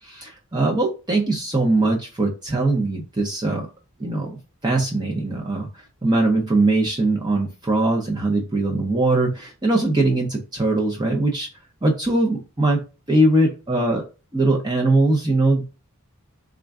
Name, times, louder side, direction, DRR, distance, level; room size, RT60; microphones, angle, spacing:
voice 1, 0.0-3.7 4.0-11.5 11.8-12.8 13.1-14.0 14.3-15.6, right 2 dB, 20° right, -1 dB, 0.6 m, -21 dB
3.6 x 2.2 x 3.5 m, 0.30 s
head